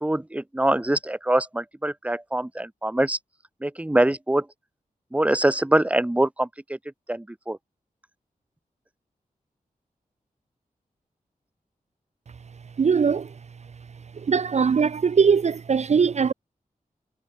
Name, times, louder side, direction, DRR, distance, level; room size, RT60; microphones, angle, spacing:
voice 1, 0.0-3.2 3.6-4.4 5.1-6.5 7.1-7.6, right 1 dB, 10° right, 1.1 m, -23 dB
voice 2, 12.8-13.3 14.3-16.3, right 6 dB, 50° right, 0.6 m, -20 dB
wide cardioid pair, 115°, 15 cm